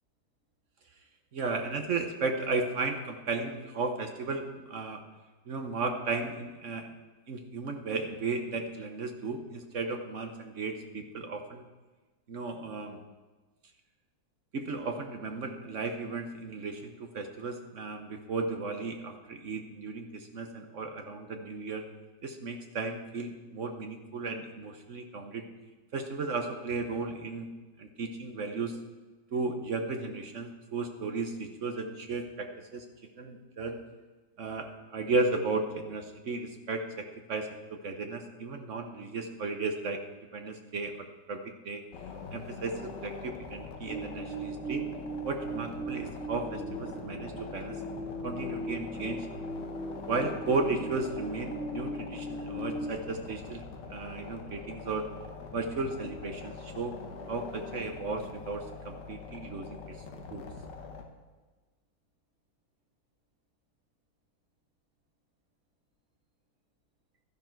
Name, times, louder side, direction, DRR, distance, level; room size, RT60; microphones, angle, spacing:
voice 1, 1.3-5.0 5.5-6.9 7.3-11.6 12.3-13.0 14.5-21.8 22.2-25.4 25.9-27.5 27.8-28.8 29.3-32.8 33.2-33.8 34.4-41.8 42.3-44.8 45.2-47.8 48.2-49.3 50.1-55.1 55.5-56.9 57.3-60.0 60.3-60.4, right 3 dB, 55° right, 5 dB, 0.8 m, -35 dB
sound 1, 41.9-61.1, left 4 dB, 60° left, 1.7 m, -44 dB
sound 2, 43.9-52.9, right 2 dB, ahead, 3.3 m, -38 dB
12.5 x 11.0 x 4.5 m, 1.3 s
omnidirectional pair, 2.3 m